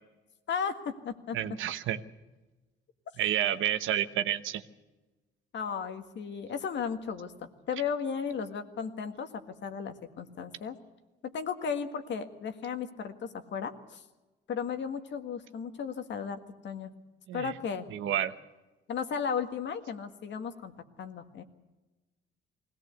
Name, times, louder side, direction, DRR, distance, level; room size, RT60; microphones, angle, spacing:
voice 1, 0.5-1.4 5.5-10.8 11.2-14.0 14.5-16.9 17.3-17.9 18.9-21.4, left 6 dB, 65° left, 7 dB, 1.8 m, -35 dB
voice 2, 1.3-2.0 3.2-4.6 17.3-17.5 17.9-18.3, right 11 dB, 80° right, 11 dB, 1.1 m, -30 dB
21.0 x 17.0 x 8.1 m, 1.2 s
cardioid pair, 90°, 20 cm